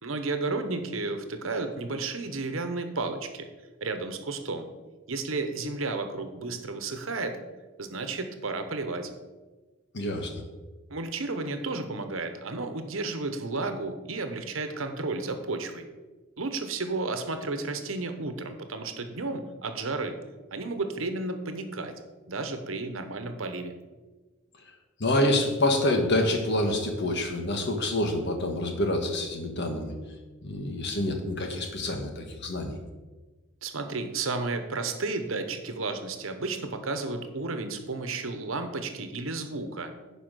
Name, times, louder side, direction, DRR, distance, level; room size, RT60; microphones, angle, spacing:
voice 1, 0.0-3.5 3.8-4.7 5.1-7.4 7.8-9.1 10.9-15.8 16.4-20.2 20.5-21.9 22.3-23.7 33.6-39.9, right 3 dB, 75° right, 7 dB, 1.1 m, -32 dB
voice 2, 9.9-10.4 25.0-29.9 30.4-32.7, left 1 dB, 60° left, 4 dB, 1.5 m, -27 dB
10.0 x 4.9 x 6.3 m, 1.2 s
head